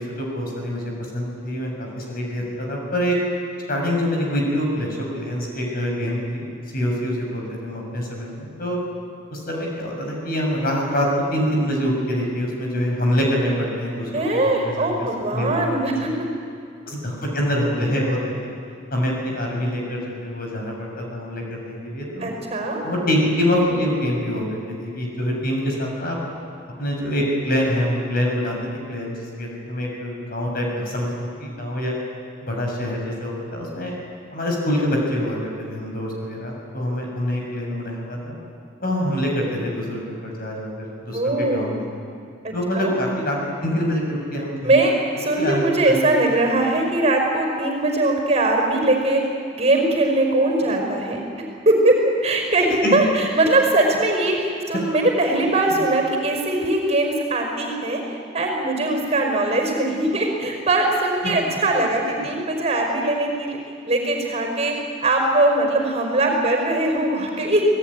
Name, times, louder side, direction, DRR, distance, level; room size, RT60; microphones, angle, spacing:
voice 1, 0.0-3.2 3.7-6.5 6.7-8.8 9.3-14.9 15.3-16.2 16.8-18.5 18.9-22.3 22.8-26.2 26.8-28.6 28.9-32.0 32.4-33.9 34.3-38.4 38.8-41.8 42.5-44.8 45.4-46.0 52.8-53.0 61.2-61.5, equal, 50° left, 0 dB, 6.8 m, -25 dB
voice 2, 14.1-16.3 22.2-22.8 41.1-41.8 42.4-42.9 44.6-49.2 49.5-51.2 51.6-58.0 58.3-63.6 63.9-64.7 65.0-67.7, right 2 dB, 35° right, 2 dB, 5.1 m, -21 dB
29.0 x 19.0 x 10.0 m, 2.3 s
head